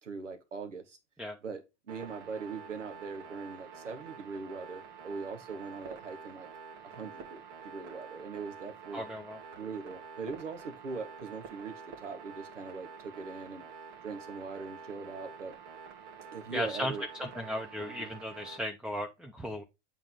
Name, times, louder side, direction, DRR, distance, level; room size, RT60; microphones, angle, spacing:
voice 1, 0.0-1.0 1.4-6.5 6.8-9.0 9.5-13.6 14.0-15.5 16.3-17.1 17.8-18.1, right 4 dB, 90° right, 1.5 m, -41 dB
sound 1, 1.9-18.6, right 6 dB, 65° right, 2.1 m, -48 dB
voice 2, 8.9-9.4 16.5-16.9 17.2-19.6, left 1 dB, ahead, 0.9 m, -36 dB
8.7 x 3.9 x 3.8 m
hypercardioid pair, 80°, 36 cm